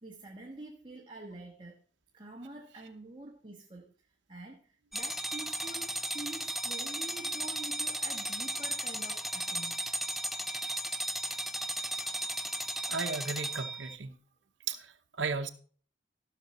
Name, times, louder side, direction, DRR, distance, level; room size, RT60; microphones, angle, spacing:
voice 1, 0.0-1.8 2.1-3.9 4.3-9.8, right 2 dB, 25° right, 1.4 m, -46 dB
sound 1, 4.9-14.0, right 1 dB, ahead, 0.5 m, -35 dB
voice 2, 12.9-14.1 14.7-15.5, right 4 dB, 75° right, 0.9 m, -35 dB
16.0 x 6.3 x 4.2 m
head